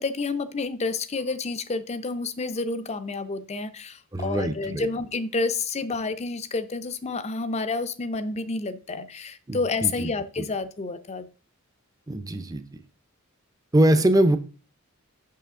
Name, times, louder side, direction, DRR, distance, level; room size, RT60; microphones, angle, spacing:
voice 1, 0.0-11.3, left 3 dB, 30° left, 0.5 m, -29 dB
voice 2, 4.1-4.9 9.5-10.1 10.4-10.5 12.1-12.6 13.7-14.4, right 1 dB, 15° right, 0.5 m, -22 dB
6.5 x 5.6 x 3.7 m
head